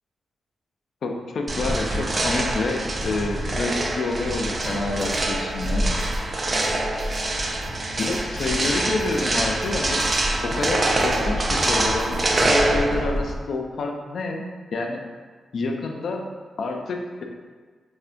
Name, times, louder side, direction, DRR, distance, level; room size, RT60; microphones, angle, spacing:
voice 1, 1.0-5.9 8.0-10.0 10.4-12.2 12.5-14.4 14.7-15.0 15.5-16.3 16.6-17.2, left 3 dB, 70° left, 2 dB, 0.3 m, -28 dB
sound 1, 1.5-13.4, right 1 dB, 35° right, 0.3 m, -24 dB
sound 2, 4.6-12.9, equal, 70° right, 0.8 m, -44 dB
3.3 x 2.1 x 2.5 m, 1.4 s
cardioid pair, 90°, 0 cm